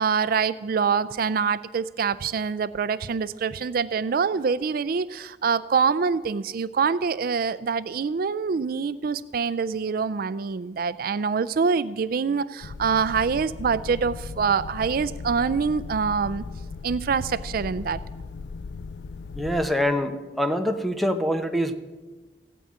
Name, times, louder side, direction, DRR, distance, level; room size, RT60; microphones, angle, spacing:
voice 1, 0.0-16.4 16.8-18.0, right 5 dB, 55° right, 15 dB, 0.4 m, -25 dB
sound 1, 12.6-19.7, left 4 dB, 75° left, 0.4 m, -37 dB
voice 2, 19.3-21.7, equal, ahead, 7 dB, 0.9 m, -25 dB
16.0 x 9.2 x 8.7 m, 1.3 s
head